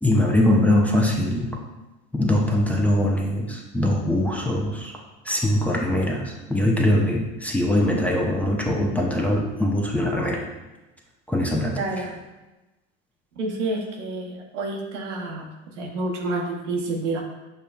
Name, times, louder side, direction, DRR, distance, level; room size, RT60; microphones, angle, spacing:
voice 1, 0.0-1.5 2.1-4.9 5.2-10.4 11.3-11.7, left 1 dB, 5° left, -2 dB, 0.6 m, -22 dB
voice 2, 11.7-12.2 13.4-15.5 15.8-17.2, right 2 dB, 85° right, 0 dB, 0.8 m, -29 dB
6.4 x 2.2 x 2.3 m, 1.1 s
hypercardioid pair, 75°, 35 cm